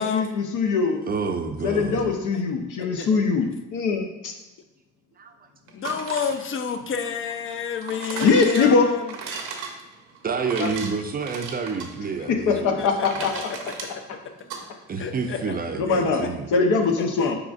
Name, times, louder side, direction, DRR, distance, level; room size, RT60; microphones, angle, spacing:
voice 1, 0.0-1.0 1.6-3.5 3.7-4.3 8.2-8.9 12.5-13.3 15.8-16.2 16.5-17.4, left 4 dB, 80° left, 3 dB, 0.7 m, -21 dB
voice 2, 1.1-2.1 5.2-5.3 10.2-12.8 13.2-13.3 14.9-16.5, right 5 dB, 30° right, 5 dB, 0.4 m, -29 dB
voice 3, 2.8-3.1 5.7-9.1 10.6-10.7 12.8-13.9 15.0-15.5 15.9-16.6 17.0-17.3, left 6 dB, 45° left, 8 dB, 0.5 m, -30 dB
sound 1, 5.7-14.6, right 5 dB, 85° right, 0.7 m, -37 dB
4.8 x 3.9 x 2.4 m, 0.98 s
cardioid pair, 90°, 30 cm